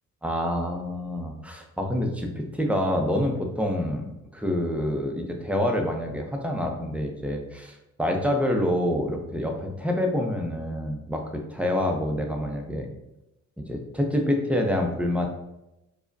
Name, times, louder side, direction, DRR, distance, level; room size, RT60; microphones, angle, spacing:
voice 1, 0.2-11.2 11.5-12.9 13.7-15.3, left 1 dB, 5° right, 2 dB, 0.5 m, -27 dB
4.8 x 2.1 x 2.6 m, 0.91 s
cardioid pair, 90°, 30 cm